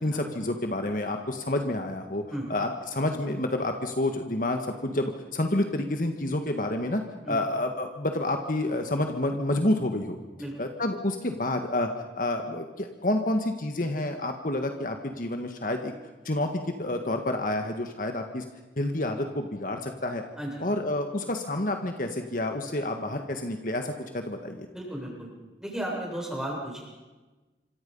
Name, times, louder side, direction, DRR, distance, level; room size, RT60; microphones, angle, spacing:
voice 1, 0.0-2.2 2.5-7.0 7.3-10.2 10.6-11.9 12.2-15.9 16.3-18.4 18.8-20.2 20.6-24.7, left 1 dB, 50° left, 5 dB, 1.7 m, -29 dB
voice 2, 20.4-20.7 24.7-25.3 25.6-26.8, right 1 dB, 5° right, -2 dB, 7.7 m, -34 dB
27.5 x 25.5 x 5.5 m, 1.2 s
head